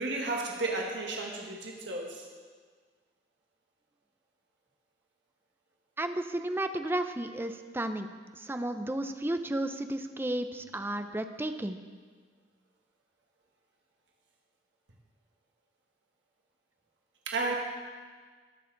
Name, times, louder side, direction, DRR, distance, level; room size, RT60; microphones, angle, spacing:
voice 1, 0.0-2.3 17.3-17.6, right 2 dB, 90° right, -1 dB, 1.5 m, -33 dB
voice 2, 6.0-8.1 8.4-11.8, right 1 dB, 15° right, 8 dB, 0.5 m, -33 dB
19.0 x 6.6 x 3.9 m, 1.5 s
head